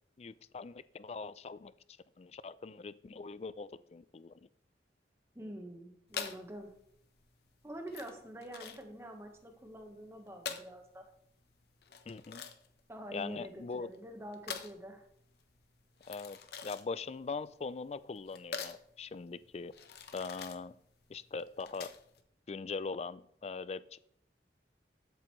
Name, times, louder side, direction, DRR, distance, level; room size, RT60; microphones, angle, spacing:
voice 1, 0.2-1.7 2.2-4.3 12.1-12.5 13.1-13.9 16.1-19.7 20.1-20.8 21.1-21.9 22.5-24.0, left 4 dB, 35° left, 17 dB, 0.3 m, -41 dB
voice 2, 5.3-6.7 7.6-11.0 12.9-15.0, right 1 dB, 15° right, 4 dB, 1.2 m, -46 dB
sound 1, 6.1-22.2, left 6 dB, 60° left, 0.9 m, -46 dB
12.5 x 7.8 x 3.1 m, 0.71 s
head